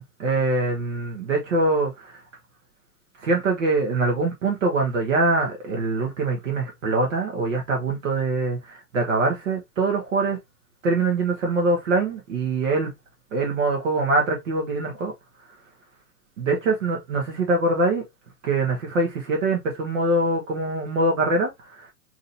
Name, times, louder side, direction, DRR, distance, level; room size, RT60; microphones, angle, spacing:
voice 1, 0.0-2.1 3.2-10.4 10.8-12.9 13.3-15.1 16.4-18.0 18.4-21.5 21.8-21.9, right 2 dB, 50° right, 1.1 m, -23 dB
3.8 x 2.8 x 2.5 m
hypercardioid pair, 135°, 49 cm